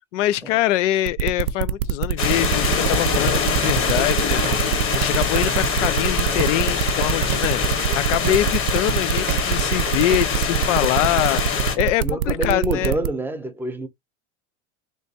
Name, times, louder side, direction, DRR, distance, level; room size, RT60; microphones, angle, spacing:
voice 1, 0.1-11.4 11.8-12.9, left 14 dB, 85° left, 0.6 m, -24 dB
sound 1, 1.1-13.1, right 11 dB, 90° right, 0.5 m, -23 dB
sound 2, 2.2-11.8, left 6 dB, 35° left, 1.2 m, -24 dB
Drum kit / Drum, 3.3-4.7 5.0-10.7, right 7 dB, 50° right, 0.8 m, -35 dB
voice 2, 11.7-13.9, right 1 dB, 5° right, 0.6 m, -27 dB
3.3 x 3.1 x 2.8 m
supercardioid pair, 115°, 36 cm